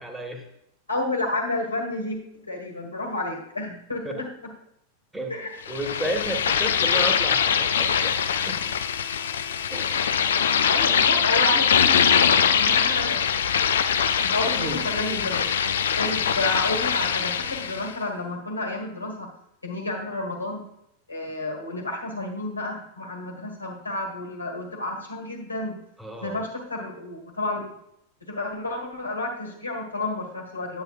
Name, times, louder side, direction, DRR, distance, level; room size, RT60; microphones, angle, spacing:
voice 1, 0.0-0.4 4.0-4.1 5.1-5.3 5.7-8.7 9.7-10.0 11.5-11.6 11.9-12.0 13.0-13.1 14.5-14.8 16.0-16.1 26.0-26.5, right 1 dB, 5° right, 4 dB, 1.4 m, -33 dB
voice 2, 0.9-4.5 5.3-5.5 10.6-13.2 13.6-13.8 14.2-19.3 19.6-20.6 21.1-25.8 26.2-27.7 28.2-30.8, left 2 dB, 80° left, 1 dB, 1.7 m, -31 dB
sound 1, 5.7-17.9, left 7 dB, 65° left, 0.4 m, -22 dB
8.9 x 8.6 x 2.4 m, 0.78 s
figure-of-eight pair, 90°, 0 cm